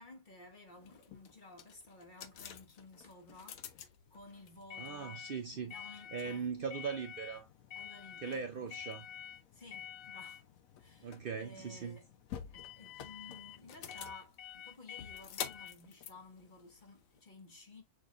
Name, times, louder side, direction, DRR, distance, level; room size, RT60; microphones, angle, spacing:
voice 1, 0.0-5.3 5.5-6.5 7.7-8.7 9.5-10.5 10.8-12.1 12.5-17.8, left 2 dB, 40° left, 1.2 m, -55 dB
sound 1, 0.8-17.2, left 9 dB, 90° left, 1.1 m, -48 dB
voice 2, 4.8-5.7 6.1-7.5 8.2-9.1 11.0-12.0, right 6 dB, 55° right, 0.7 m, -40 dB
6.1 x 3.2 x 2.4 m
omnidirectional pair, 1.4 m